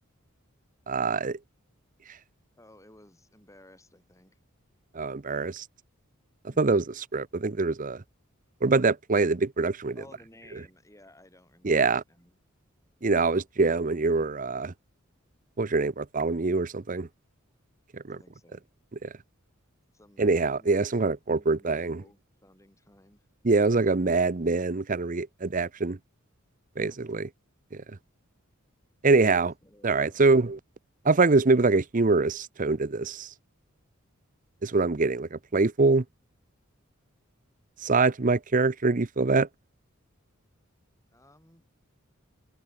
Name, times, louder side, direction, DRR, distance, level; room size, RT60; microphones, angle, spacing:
voice 1, 0.9-1.4 4.9-5.6 6.6-8.0 8.6-9.9 11.6-12.0 13.0-14.7 15.6-17.1 17.9-18.2 19.0-19.1 20.2-22.0 23.4-26.0 26.8-27.3 27.7-27.8 29.0-29.5 29.8-30.6 31.0-33.3 34.6-36.0 37.8-39.5, right 3 dB, 40° right, 0.7 m, -24 dB
voice 2, 2.6-4.4 6.5-6.9 10.0-12.4 18.1-18.6 19.9-20.9 21.3-23.3 26.9-27.1 29.6-30.4 41.1-41.6, left 1 dB, 15° left, 7.9 m, -56 dB
open air
head